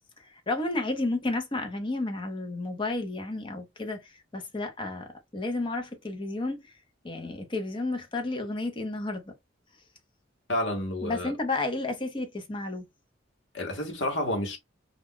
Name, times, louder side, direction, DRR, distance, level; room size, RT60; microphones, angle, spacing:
voice 1, 0.2-5.1 5.3-6.7 7.0-9.3 11.0-12.9, left 2 dB, 25° left, 0.7 m, -32 dB
voice 2, 10.5-11.3 13.5-14.6, left 1 dB, 75° left, 1.0 m, -30 dB
2.4 x 2.1 x 3.6 m
head